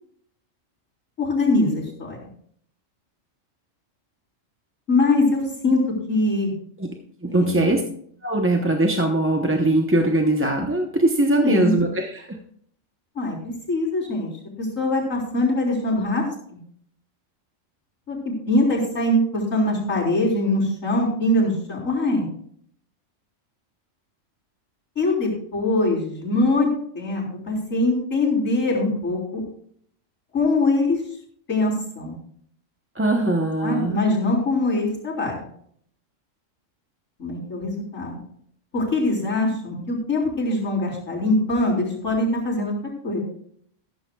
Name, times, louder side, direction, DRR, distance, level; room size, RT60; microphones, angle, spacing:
voice 1, 1.2-2.2 4.9-5.8 6.1-6.5 7.3-7.8 11.4-11.7 13.2-14.3 14.6-16.6 18.1-18.2 18.5-22.3 25.0-26.7 26.9-29.4 30.3-31.0 31.5-32.2 33.6-35.5 37.2-38.2 38.7-42.7 43.0-43.2, left 2 dB, 85° left, -4 dB, 4.3 m, -22 dB
voice 2, 7.2-7.8 8.2-12.4 32.9-33.9, right 1 dB, 10° right, 2 dB, 0.7 m, -21 dB
14.5 x 14.0 x 2.3 m, 0.63 s
omnidirectional pair, 1.3 m